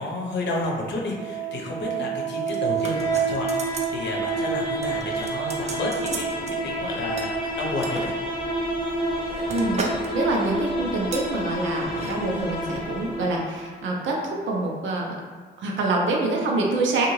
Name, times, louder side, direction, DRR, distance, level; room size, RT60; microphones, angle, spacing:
voice 1, 0.0-6.3 6.6-8.2, left 1 dB, 60° left, -1 dB, 0.7 m, -31 dB
sound 1, 0.9-13.9, right 2 dB, 25° left, 0.8 m, -29 dB
sound 2, 2.5-4.0 4.3-4.5 4.8-6.6 7.2-8.1 8.7-10.1 10.4-10.6 11.1-11.3 11.9-12.2 12.4-12.5, right 3 dB, 35° right, 0.4 m, -35 dB
voice 2, 9.5-15.2 15.6-17.1, right 2 dB, 75° right, -1 dB, 0.6 m, -26 dB
2.6 x 2.4 x 3.1 m, 1.5 s
cardioid pair, 90°, 20 cm